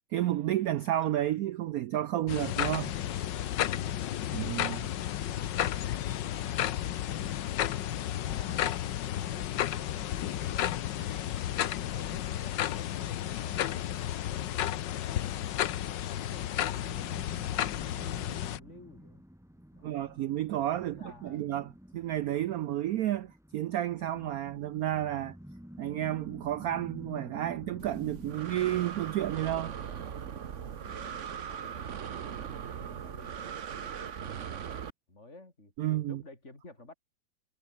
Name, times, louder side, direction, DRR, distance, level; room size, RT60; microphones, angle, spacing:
voice 1, 0.1-2.9 4.3-4.9 19.8-25.4 25.8-29.7 35.8-36.2, right 12 dB, 80° right, 0.8 m, -31 dB
sound 1, 2.3-18.6, left 12 dB, 65° left, 1.5 m, -32 dB
voice 2, 3.7-4.2 8.2-14.2 14.8-15.8 16.1-19.2 19.7-20.1 20.9-21.5 30.8-34.8 35.1-35.7 36.1-36.9, left 2 dB, 35° left, 6.1 m, -54 dB
sound 2, 16.7-32.2, equal, ahead, 2.0 m, -50 dB
Breathing, 27.8-34.9, right 8 dB, 45° right, 1.2 m, -39 dB
omnidirectional pair, 2.1 m